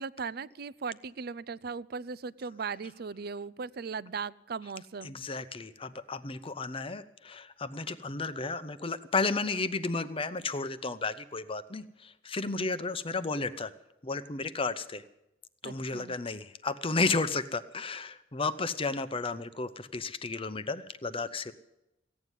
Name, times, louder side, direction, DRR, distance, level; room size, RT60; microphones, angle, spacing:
voice 1, 0.0-5.1 15.6-16.2, right 5 dB, 55° right, 19 dB, 0.5 m, -38 dB
voice 2, 5.0-13.7 14.0-15.0 15.6-21.5, left 3 dB, 30° left, 13 dB, 0.8 m, -33 dB
16.0 x 9.3 x 9.8 m, 0.88 s
head